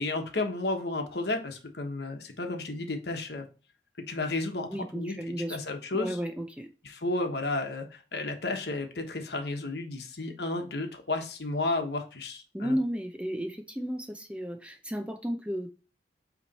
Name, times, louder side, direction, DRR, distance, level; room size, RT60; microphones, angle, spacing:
voice 1, 0.0-3.5 4.1-5.2 5.5-6.2 6.8-12.8, left 2 dB, 65° left, 4 dB, 1.2 m, -32 dB
voice 2, 4.7-5.6 5.9-6.7 12.5-15.7, equal, 5° right, 5 dB, 0.6 m, -33 dB
8.3 x 3.2 x 4.1 m, 0.35 s
head